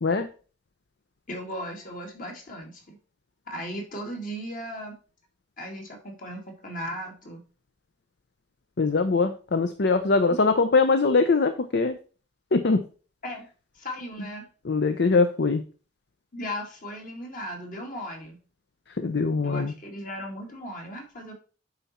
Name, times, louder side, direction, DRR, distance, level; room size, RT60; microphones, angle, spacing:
voice 1, 1.3-3.0 3.5-4.9 5.6-7.4 13.2-13.5 13.7-14.5 16.3-18.4 19.4-21.3, equal, 45° left, 1 dB, 2.1 m, -37 dB
voice 2, 8.8-12.0 12.5-12.8 14.6-15.6 19.0-19.7, left 4 dB, 65° left, 8 dB, 0.6 m, -22 dB
9.6 x 4.1 x 4.3 m, 0.38 s
head